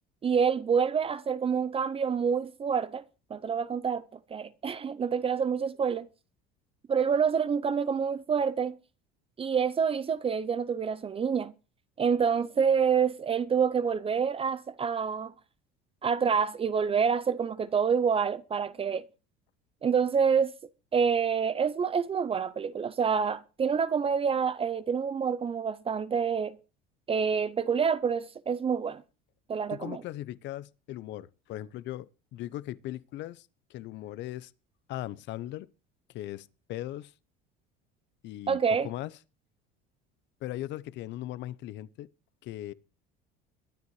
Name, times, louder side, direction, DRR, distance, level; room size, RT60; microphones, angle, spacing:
voice 1, 0.2-3.0 3.3-4.0 4.3-6.1 6.9-8.8 9.4-11.5 12.0-15.3 16.0-19.0 19.8-20.5 20.9-26.6 27.1-29.0 29.5-30.0 38.5-38.9, right 6 dB, 25° right, 0.6 m, -27 dB
voice 2, 29.7-34.5 34.9-35.7 36.1-37.1 38.2-38.6 38.8-39.1 40.4-42.1 42.4-42.7, left 14 dB, 60° left, 0.7 m, -38 dB
22.5 x 9.5 x 3.2 m
supercardioid pair, 110°, 21 cm